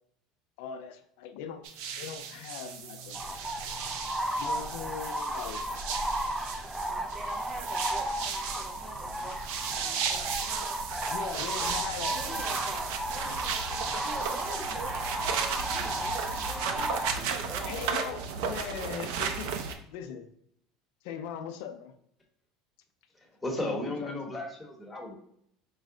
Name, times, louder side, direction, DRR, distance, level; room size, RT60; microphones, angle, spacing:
voice 1, 0.6-1.6 2.0-3.3 4.3-5.6 9.3-9.4 11.1-12.4 13.3-13.4 17.7-19.5 19.9-20.3 21.0-21.9 23.6-24.1, left 8 dB, 75° left, 8 dB, 0.5 m, -40 dB
sound 1, 1.6-19.7, right 6 dB, 75° right, 0.5 m, -35 dB
sound 2, 3.1-17.1, right 1 dB, 5° right, 0.3 m, -34 dB
voice 2, 6.6-9.4 9.8-10.8 11.5-18.8, right 3 dB, 30° right, 4 dB, 0.8 m, -45 dB
voice 3, 23.1-25.1, left 1 dB, 10° left, -1 dB, 1.0 m, -35 dB
4.7 x 2.1 x 3.7 m, 0.71 s
supercardioid pair, 135°, 0 cm